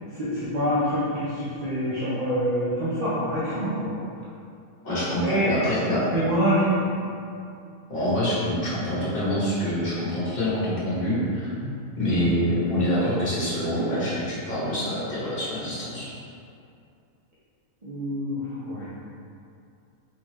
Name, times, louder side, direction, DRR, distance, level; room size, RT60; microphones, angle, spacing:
voice 1, 0.1-3.9 4.9-5.5 6.1-6.9 11.6-11.7 17.8-18.9, equal, 35° right, -11 dB, 0.7 m, -26 dB
voice 2, 4.8-6.0 7.9-11.5 12.0-16.1, equal, 40° left, -10 dB, 1.6 m, -26 dB
4.0 x 3.8 x 3.1 m, 2.5 s
omnidirectional pair, 1.5 m